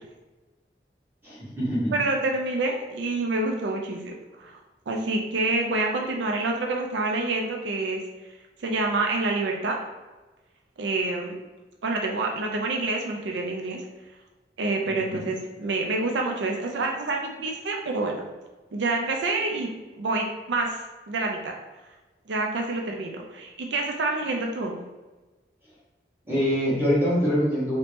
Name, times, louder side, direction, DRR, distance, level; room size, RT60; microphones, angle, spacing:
voice 1, 1.2-1.9 15.1-15.3 26.2-27.8, equal, 10° right, -9 dB, 1.4 m, -24 dB
voice 2, 1.9-4.6 4.9-8.0 8.6-9.8 10.8-11.3 11.8-13.8 14.6-18.3 18.7-19.7 20.0-20.8 21.1-21.5 22.3-24.8, right 2 dB, 80° right, 1 dB, 0.4 m, -27 dB
3.0 x 2.8 x 3.4 m, 1.2 s
head